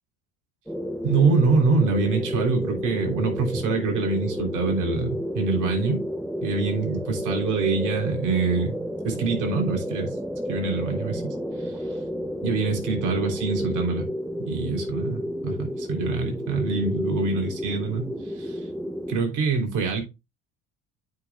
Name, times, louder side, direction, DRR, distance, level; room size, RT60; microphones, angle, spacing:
sound 1, 0.7-19.2, equal, ahead, 0.7 m, -31 dB
voice 1, 1.0-6.0 6.4-8.8 9.0-10.1 10.5-11.2 11.6-12.0 12.4-14.1 14.4-18.6 19.1-20.0, right 4 dB, 60° right, 3.4 m, -25 dB
9.4 x 6.0 x 2.4 m
supercardioid pair, 95°, 34 cm